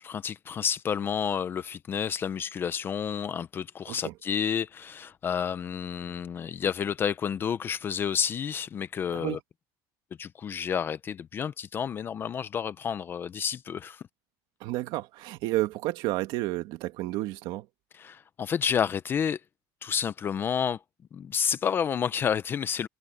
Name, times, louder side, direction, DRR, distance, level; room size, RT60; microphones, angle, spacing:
voice 1, 0.0-9.4 10.2-14.0 17.9-19.4 19.8-20.8 21.1-22.9, left 7 dB, 20° left, 0.5 m, -30 dB
voice 2, 14.6-17.7, right 17 dB, 55° right, 2.1 m, -31 dB
cardioid pair, 175°, 10 cm